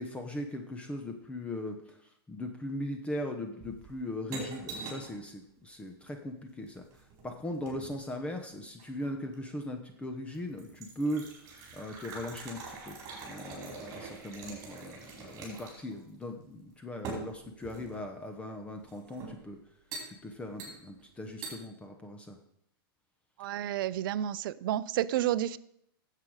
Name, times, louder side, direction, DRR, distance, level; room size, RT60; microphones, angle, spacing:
voice 1, 0.0-1.8 2.3-6.8 7.2-13.0 13.2-19.6 20.1-22.4, left 1 dB, 10° left, 4 dB, 0.8 m, -39 dB
sound 1, 3.6-5.2 6.6-8.0 8.8-9.4 10.0-10.1 10.3-15.9 16.2-16.3 17.0-18.1 18.9-19.4 19.9-20.1 20.6-21.0 21.4-21.6, right 4 dB, 30° right, 4.4 m, -44 dB
voice 2, 23.4-25.6, right 12 dB, 60° right, 17 dB, 0.5 m, -30 dB
10.0 x 7.6 x 4.8 m, 0.74 s
hypercardioid pair, 135°, 13 cm